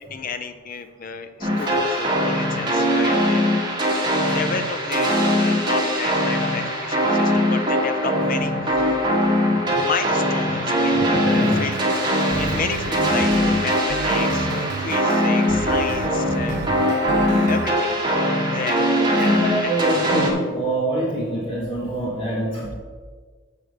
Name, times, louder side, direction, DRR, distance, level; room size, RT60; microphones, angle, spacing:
voice 1, 0.0-3.4 4.2-9.0 9.5-16.6 17.3-18.0 18.5-19.7, left 4 dB, 40° left, 8 dB, 0.5 m, -31 dB
sound 1, 1.4-20.3, equal, 20° right, 1.5 m, -21 dB
voice 2, 11.1-11.6 12.9-13.1 19.1-22.8, right 1 dB, 25° left, -6 dB, 1.6 m, -25 dB
sound 2, 11.4-17.7, right 3 dB, 50° right, 0.3 m, -31 dB
7.7 x 5.0 x 6.5 m, 1.5 s
head